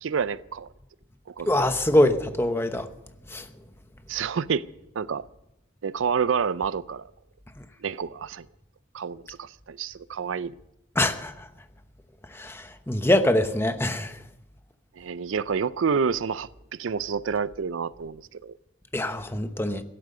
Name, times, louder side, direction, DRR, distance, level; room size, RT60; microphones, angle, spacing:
voice 1, 0.0-0.7 1.3-1.5 4.1-4.7 5.0-5.3 5.8-7.1 7.8-8.5 8.9-10.5 15.0-16.5 16.8-18.5, right 6 dB, 85° right, 0.5 m, -28 dB
voice 2, 1.5-2.9 3.3-3.5 11.0-11.5 12.3-14.2 18.9-19.8, left 1 dB, 10° left, 0.9 m, -24 dB
16.5 x 12.0 x 6.7 m
head